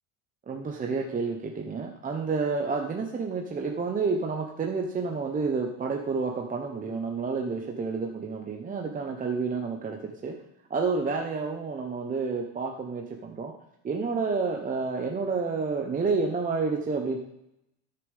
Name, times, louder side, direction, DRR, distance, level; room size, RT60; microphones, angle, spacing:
voice 1, 0.5-10.4 10.7-13.5 13.8-17.2, right 4 dB, 20° right, 2 dB, 1.0 m, -29 dB
16.0 x 6.9 x 3.6 m, 0.81 s
supercardioid pair, 125°, 37 cm